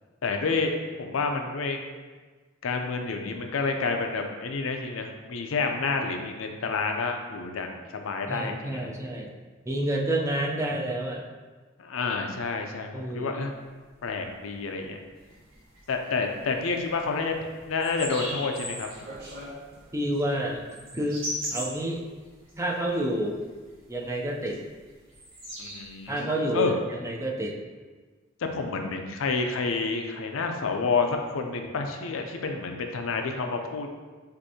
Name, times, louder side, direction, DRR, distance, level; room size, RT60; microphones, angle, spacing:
voice 1, 0.2-1.8 2.6-8.9 11.8-13.5 14.0-15.0 15.9-17.3 17.7-18.9 25.6-26.7 28.4-33.9, left 4 dB, 75° left, 4 dB, 0.5 m, -29 dB
voice 2, 8.3-9.3 9.7-11.2 12.9-13.4 19.9-20.6 20.9-21.2 21.5-22.0 22.6-23.4 23.9-24.6 26.1-26.7 27.0-27.6, right 1 dB, 15° right, -1 dB, 0.4 m, -29 dB
sound 1, 13.5-19.9, equal, 50° right, 1.0 m, -47 dB
sound 2, 15.2-16.5 16.8-16.9 17.3-17.4 17.7-18.9 19.3-22.6 22.9-23.4 23.7-24.0 24.4-26.2, equal, 75° right, 1.4 m, -37 dB
6.2 x 2.6 x 2.8 m, 1.4 s
head